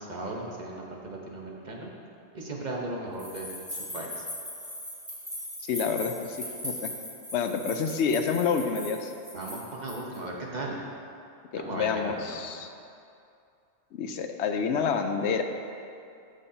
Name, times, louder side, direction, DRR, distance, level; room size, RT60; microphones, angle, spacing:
voice 1, 0.0-1.9 2.3-4.2 9.3-10.8 11.5-12.3, right 2 dB, 40° right, -2 dB, 1.1 m, -36 dB
sound 1, 3.2-10.2, left 1 dB, 5° right, 2.1 m, -39 dB
voice 2, 5.6-6.9 7.3-9.1 11.5-12.7 13.9-15.4, left 6 dB, 80° left, 6 dB, 0.9 m, -28 dB
13.0 x 6.5 x 2.8 m, 2.5 s
omnidirectional pair, 1.2 m